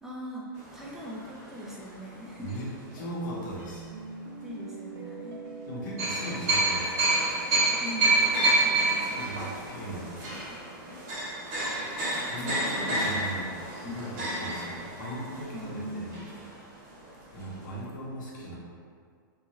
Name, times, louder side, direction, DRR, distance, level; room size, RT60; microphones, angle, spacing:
voice 1, 0.0-2.6 4.4-5.4 7.8-9.0 12.4-13.3 13.8-14.0 15.5-16.3, equal, 5° right, -5 dB, 0.3 m, -40 dB
sound 1, 0.6-3.0 3.6-3.8 6.0-16.7 17.0-17.1 17.4-17.6, right 2 dB, 45° right, 0.9 m, -29 dB
voice 2, 2.4-3.9 5.7-7.1 9.1-10.3 12.2-13.5 13.8-16.2 17.3-18.6, right 1 dB, 60° left, -5 dB, 0.9 m, -38 dB
sound 2, 3.6-9.3, right 5 dB, 80° right, 0.5 m, -45 dB
2.7 x 2.3 x 3.0 m, 2.1 s
hypercardioid pair, 150°, 12 cm